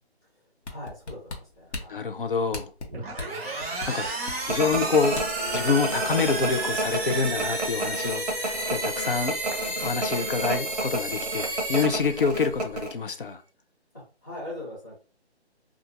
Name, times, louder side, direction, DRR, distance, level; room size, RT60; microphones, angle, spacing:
sound 1, 0.6-5.5 5.9-6.0, left 2 dB, 90° left, 1.1 m, -37 dB
voice 1, 0.7-2.0 13.9-15.0, left 1 dB, 20° left, 1.2 m, -41 dB
voice 2, 1.9-2.7 3.4-4.1 4.4-5.2 5.5-9.4 9.7-13.4, left 5 dB, 55° left, 0.4 m, -27 dB
sound 2, 2.9-12.6, right 2 dB, 15° right, 1.0 m, -32 dB
sound 3, 4.5-12.9, right 1 dB, 40° right, 0.6 m, -30 dB
2.6 x 2.4 x 2.5 m
hypercardioid pair, 175°, 33 cm